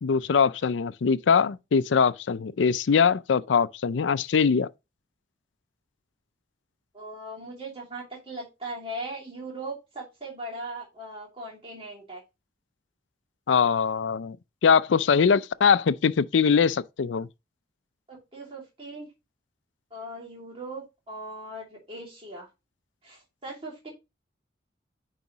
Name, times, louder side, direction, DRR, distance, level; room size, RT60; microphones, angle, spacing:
voice 1, 0.0-4.7 13.5-14.4 14.6-17.3, left 6 dB, 90° left, 0.4 m, -22 dB
voice 2, 6.9-12.2 18.1-19.1 19.9-22.5 23.0-23.9, right 1 dB, 30° right, 2.7 m, -39 dB
9.4 x 4.8 x 2.9 m
head